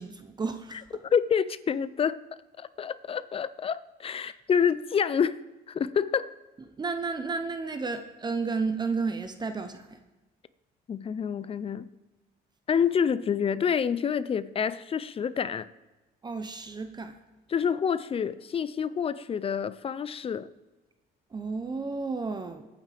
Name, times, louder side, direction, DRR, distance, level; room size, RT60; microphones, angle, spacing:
voice 1, 0.0-0.8 4.2-4.3 6.8-10.0 16.2-17.1 21.3-22.7, right 4 dB, 25° right, 0.8 m, -32 dB
voice 2, 1.0-2.2 2.6-5.4 5.7-6.3 10.9-11.9 12.7-15.7 17.5-20.5, left 7 dB, 35° left, 0.6 m, -27 dB
25.5 x 9.1 x 3.5 m
cardioid pair, 110°, 17 cm